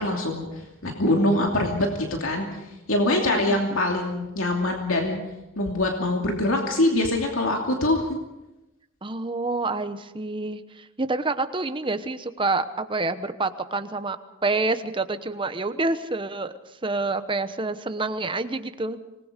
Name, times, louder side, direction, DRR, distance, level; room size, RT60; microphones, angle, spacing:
voice 1, 0.0-5.2 5.6-8.1, left 1 dB, 70° left, 1 dB, 2.8 m, -24 dB
voice 2, 3.0-3.6 9.0-14.2 14.4-16.5 16.8-19.0, right 3 dB, 25° right, 10 dB, 1.0 m, -28 dB
26.0 x 20.0 x 5.2 m, 0.98 s
head